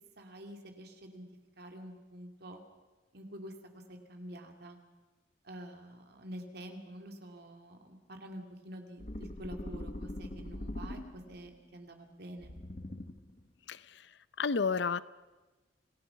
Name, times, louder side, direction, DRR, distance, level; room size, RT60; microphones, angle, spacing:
voice 1, 0.2-1.3 1.6-2.6 3.1-3.5 3.9-4.8 5.4-12.5, right 1 dB, 60° right, 4 dB, 2.7 m, -47 dB
sound 1, 9.0-11.5 12.4-13.4, left 1 dB, 40° left, 1.2 m, -42 dB
voice 2, 13.7-14.0 14.4-15.0, left 5 dB, 70° left, 17 dB, 0.7 m, -31 dB
27.5 x 18.0 x 5.8 m, 1.2 s
head